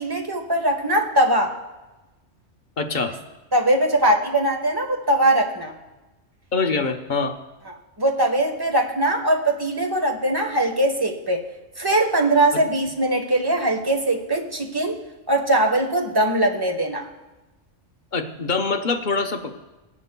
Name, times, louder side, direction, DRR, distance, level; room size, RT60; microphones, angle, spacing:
voice 1, 0.0-1.6 3.5-5.7 7.7-11.4 11.8-15.0 15.3-17.1, right 1 dB, 20° right, 2 dB, 1.1 m, -21 dB
voice 2, 2.8-3.2 6.5-7.4 18.1-19.5, left 4 dB, 45° left, 5 dB, 0.8 m, -24 dB
18.0 x 11.0 x 2.2 m, 1.1 s
omnidirectional pair, 1.3 m